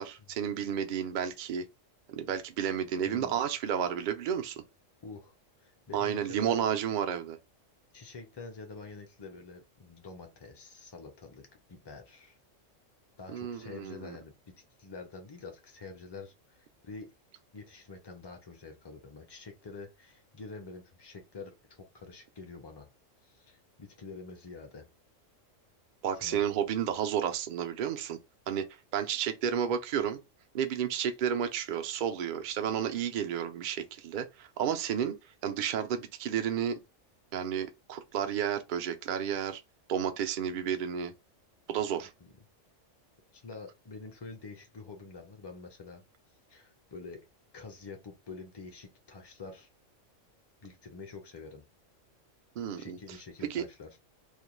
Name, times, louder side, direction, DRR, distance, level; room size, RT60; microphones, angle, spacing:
voice 1, 0.0-1.6 2.1-4.6 5.9-7.4 13.3-14.2 26.0-28.2 28.5-28.7 28.9-30.2 30.5-35.2 35.4-36.8 37.3-39.6 39.9-41.1 41.7-42.1 52.6-53.0 53.5-53.6, right 8 dB, 65° right, 0.5 m, -31 dB
voice 2, 3.1-3.4 5.0-6.6 7.9-12.4 13.2-14.5 14.8-17.1 17.5-22.9 23.2-24.9 26.1-26.4 42.2-42.4 43.3-46.0 46.5-47.3 47.5-49.7 50.6-51.6 52.8-54.0, left 4 dB, 35° left, 0.4 m, -47 dB
2.4 x 2.2 x 3.0 m
omnidirectional pair, 1.3 m